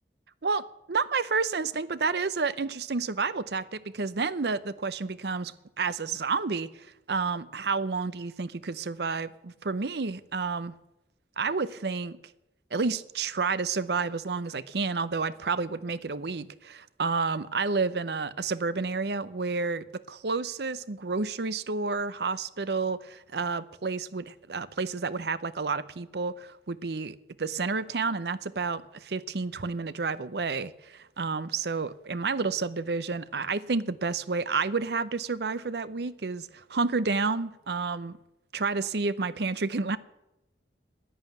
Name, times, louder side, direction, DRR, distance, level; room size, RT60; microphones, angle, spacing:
voice 1, 0.4-10.7 11.4-12.2 12.7-38.2 38.5-40.0, right 4 dB, 70° right, 0.7 m, -30 dB
11.0 x 9.6 x 9.1 m
head